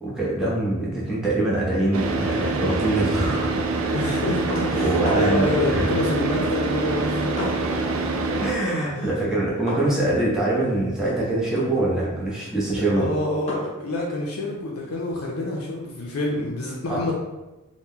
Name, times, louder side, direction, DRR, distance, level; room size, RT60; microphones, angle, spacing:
voice 1, 0.0-3.5 4.6-5.9 8.4-13.1 16.9-17.0, right 2 dB, ahead, -7 dB, 0.6 m, -24 dB
Car / Idling, 1.9-8.5, right 3 dB, 70° right, 0.4 m, -25 dB
voice 2, 3.9-7.8 8.9-9.3 12.9-17.1, left 2 dB, 75° left, -2 dB, 0.5 m, -27 dB
sound 1, 4.5-5.5 6.4-8.0 8.3-15.6, left 2 dB, 30° left, 0.8 m, -38 dB
2.8 x 2.1 x 3.6 m, 1.1 s
head